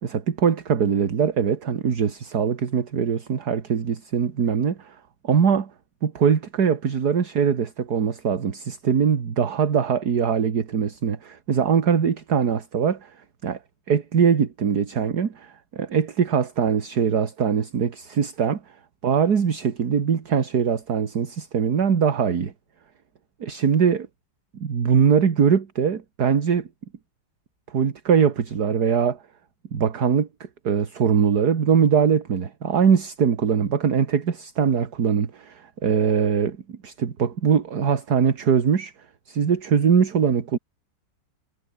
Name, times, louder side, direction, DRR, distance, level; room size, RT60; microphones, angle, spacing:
voice 1, 0.0-5.0 5.2-5.7 6.0-13.1 13.4-13.6 13.9-18.6 19.0-22.5 23.4-24.1 24.5-26.7 27.7-29.2 29.7-30.3 30.6-38.9 39.3-40.6, right 7 dB, 60° right, 2.3 m, -22 dB
omnidirectional pair, 2.0 m